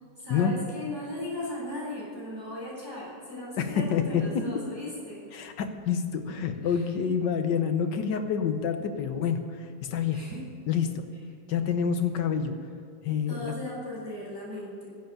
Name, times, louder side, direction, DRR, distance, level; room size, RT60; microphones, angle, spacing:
voice 1, 0.2-5.2 6.6-6.8 10.1-10.4 13.3-14.9, left 1 dB, 15° right, -6 dB, 3.9 m, -37 dB
voice 2, 3.6-4.4 5.3-9.4 9.9-10.2 10.7-10.9 11.5-12.5 13.0-13.5, left 7 dB, 85° left, 7 dB, 1.7 m, -27 dB
11.0 x 8.0 x 8.8 m, 2.6 s
omnidirectional pair, 1.9 m